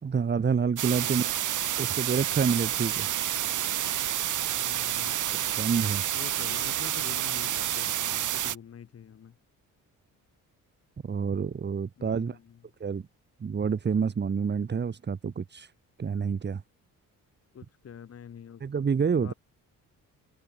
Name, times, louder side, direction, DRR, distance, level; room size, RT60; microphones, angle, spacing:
voice 1, 0.0-1.2 1.8-3.1 5.5-6.0 11.0-12.4 12.8-13.0 13.4-15.7 16.0-16.6 18.6-19.3, right 6 dB, 30° right, 2.9 m, -28 dB
sound 1, 0.8-8.6, right 11 dB, 60° right, 3.5 m, -29 dB
voice 2, 1.0-1.3 4.6-5.3 6.1-9.4 12.0-12.6 17.5-18.9 19.1-19.3, left 8 dB, 45° left, 5.9 m, -46 dB
cardioid pair, 145°, 33 cm